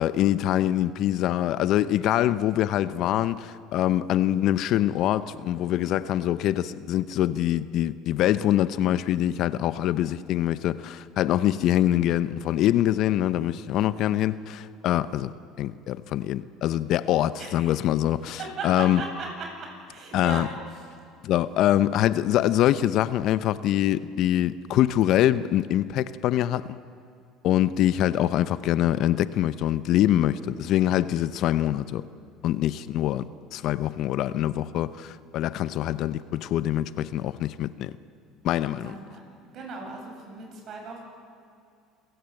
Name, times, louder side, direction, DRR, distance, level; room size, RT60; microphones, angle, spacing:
voice 1, 0.0-15.3 15.6-18.4 18.6-19.0 20.1-20.5 21.2-26.8 27.4-32.0 32.4-37.9 38.4-38.9, left 12 dB, 60° left, 0.7 m, -24 dB
voice 2, 18.4-19.5 19.9-20.4 20.7-20.8 38.8-41.0, right 4 dB, 50° right, 7.9 m, -37 dB
28.0 x 16.0 x 7.9 m
supercardioid pair, 90°, 0 cm